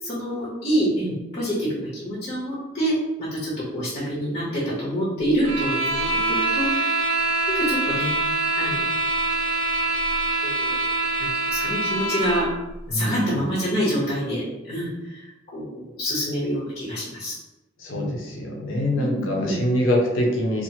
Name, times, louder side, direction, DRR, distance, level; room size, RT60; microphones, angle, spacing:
voice 1, 0.0-6.1 6.5-6.8 7.5-8.1 8.6-8.9 10.4-10.7 11.2-12.5 12.9-15.2 15.5-17.3 17.9-18.1 19.0-19.6, equal, 35° left, -8 dB, 0.9 m, -26 dB
sound 1, 5.4-12.5, right 2 dB, 80° right, 0.6 m, -24 dB
voice 2, 12.9-13.4 17.8-20.6, left 1 dB, 80° left, -1 dB, 0.7 m, -24 dB
2.8 x 2.5 x 2.8 m, 1.0 s
head